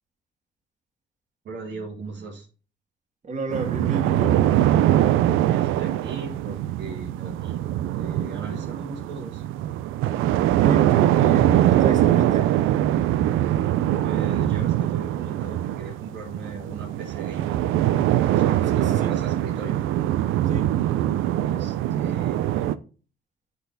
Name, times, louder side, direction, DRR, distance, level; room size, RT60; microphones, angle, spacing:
voice 1, 1.4-2.5 5.4-7.6 7.9-9.4 13.4-13.5 14.0-17.8 18.3-19.8 21.2-22.8, right 3 dB, 65° right, 1.7 m, -38 dB
voice 2, 3.2-4.4 10.6-12.5 18.7-19.1 20.5-20.7, right 3 dB, 35° right, 2.0 m, -31 dB
sound 1, 3.5-22.7, right 13 dB, 90° right, 0.5 m, -22 dB
9.3 x 4.1 x 3.9 m
cardioid pair, 90°, 20 cm